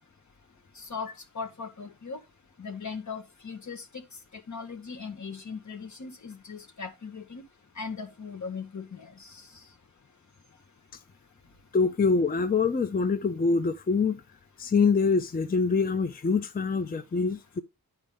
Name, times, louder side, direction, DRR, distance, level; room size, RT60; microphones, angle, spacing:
voice 1, 0.8-2.2 2.6-4.0 4.5-7.4 7.8-9.4, left 5 dB, 55° left, 1.2 m, -39 dB
voice 2, 11.7-14.2 14.6-17.6, left 4 dB, 25° left, 0.5 m, -25 dB
10.0 x 4.4 x 3.5 m
wide cardioid pair, 95°, 35 cm